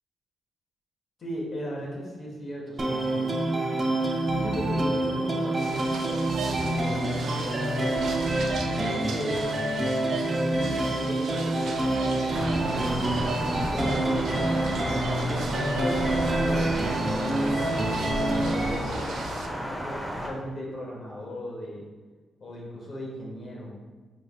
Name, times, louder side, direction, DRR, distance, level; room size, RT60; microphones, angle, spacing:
voice 1, 1.2-3.3 4.3-6.0 6.3-8.0 8.7-9.6 10.2-14.9 15.5-21.8 22.4-23.8, equal, 50° left, -3 dB, 1.3 m, -37 dB
sound 1, 2.8-18.8, right 1 dB, 30° right, 0.6 m, -27 dB
sound 2, 5.6-19.5, right 4 dB, 80° right, 0.4 m, -38 dB
Thunder, 12.3-20.3, equal, ahead, 0.8 m, -33 dB
4.9 x 4.4 x 2.3 m, 1.3 s
cardioid pair, 110°, 0 cm